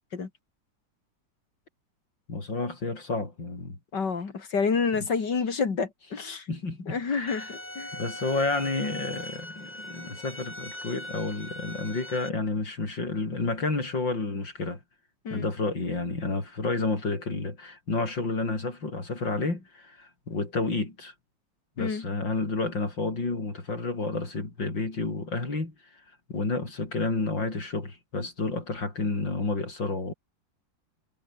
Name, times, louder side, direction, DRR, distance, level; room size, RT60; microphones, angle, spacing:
voice 1, 2.3-3.8 6.5-7.5 7.9-14.8 15.3-21.1 21.8-26.0 26.3-30.1, left 3 dB, 80° left, 6.3 m, -30 dB
voice 2, 3.9-6.5 6.9-7.9 15.2-15.5 21.8-22.1, left 5 dB, 65° left, 3.2 m, -29 dB
sound 1, 7.3-12.3, left 1 dB, 20° left, 6.0 m, -40 dB
omnidirectional pair, 2.0 m